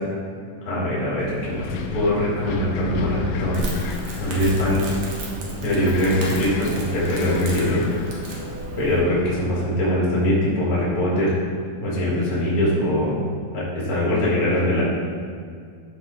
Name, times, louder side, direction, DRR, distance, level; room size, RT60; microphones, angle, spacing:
voice 1, 0.7-3.7 4.2-4.8 5.6-7.8 8.8-11.5 11.8-13.1 13.5-14.8, left 1 dB, 30° left, -7 dB, 2.0 m, -22 dB
Wind, 1.2-9.3, left 3 dB, 80° left, 2.3 m, -32 dB
Crackle, 3.5-9.0, right 2 dB, 60° right, 2.3 m, -34 dB
11.5 x 4.4 x 4.3 m, 2.2 s
omnidirectional pair, 4.1 m